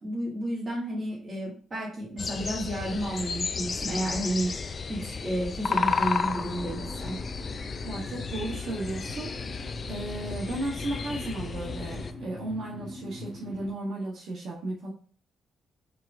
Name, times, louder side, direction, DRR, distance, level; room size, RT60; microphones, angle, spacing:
voice 1, 0.0-4.5 4.9-7.1, right 1 dB, 35° right, -7 dB, 1.8 m, -31 dB
sound 1, 2.2-12.1, left 5 dB, 45° left, 0.3 m, -33 dB
sound 2, 6.5-13.7, left 2 dB, 20° left, 1.3 m, -42 dB
voice 2, 7.8-14.9, right 2 dB, 70° right, -3 dB, 0.9 m, -35 dB
4.5 x 3.3 x 2.5 m, 0.43 s
cardioid pair, 80°, 0 cm